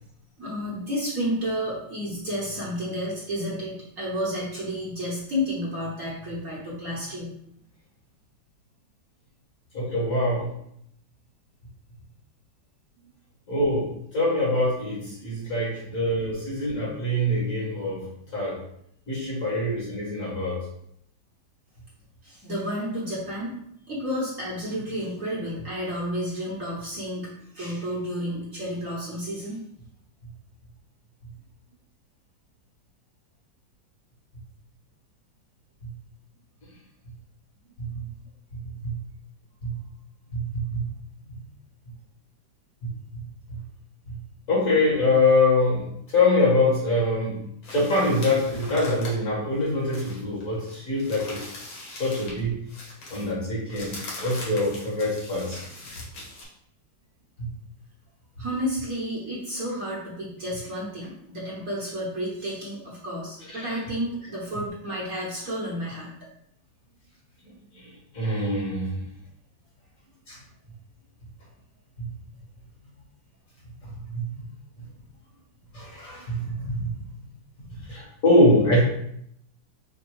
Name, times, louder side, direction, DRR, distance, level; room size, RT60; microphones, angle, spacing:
voice 1, 0.4-7.3 22.2-23.5 23.9-29.6 58.4-66.1, equal, 50° right, -6 dB, 1.3 m, -31 dB
voice 2, 9.7-10.5 13.5-18.6 19.1-20.6 30.2-30.3 35.8-35.9 36.6-36.7 37.8-38.1 38.5-39.0 39.6-39.8 40.3-40.9 41.3-41.4 42.8-43.6 44.1-44.2 44.5-51.6 51.9-52.7 53.1-55.6 57.4-57.5 58.4-58.5 63.5-63.8 67.4-69.1 70.3-70.4 72.0-72.1 73.8-74.4 74.8-74.9 75.7-77.1 77.7-78.8, left 1 dB, 45° left, -5 dB, 1.8 m, -25 dB
sound 1, 47.6-52.4 52.7-56.4, left 2 dB, 85° left, 2.1 m, -41 dB
5.1 x 2.2 x 4.7 m, 0.73 s
omnidirectional pair, 2.1 m